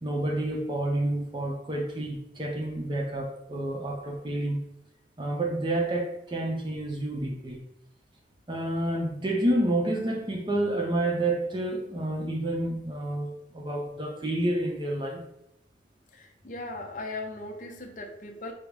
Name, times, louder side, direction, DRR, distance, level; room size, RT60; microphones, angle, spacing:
voice 1, 0.0-4.6 5.2-7.6 8.5-15.2, right 1 dB, 25° right, 1 dB, 0.6 m, -29 dB
voice 2, 16.1-18.5, left 2 dB, 45° left, 2 dB, 0.6 m, -38 dB
5.1 x 2.0 x 4.7 m, 0.81 s
head